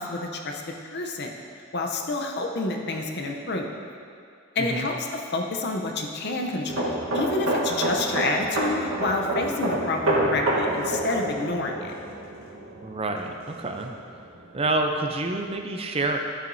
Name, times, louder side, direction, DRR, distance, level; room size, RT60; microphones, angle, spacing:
voice 1, 0.0-1.3 1.7-3.7 4.5-12.0, left 2 dB, 50° left, 2 dB, 0.7 m, -28 dB
sound 1, 6.7-14.2 14.4-14.7, right 1 dB, 75° right, 1.3 m, -28 dB
voice 2, 12.8-13.9 14.5-16.2, right 2 dB, 25° right, 4 dB, 0.5 m, -27 dB
11.0 x 7.6 x 2.7 m, 2.3 s
head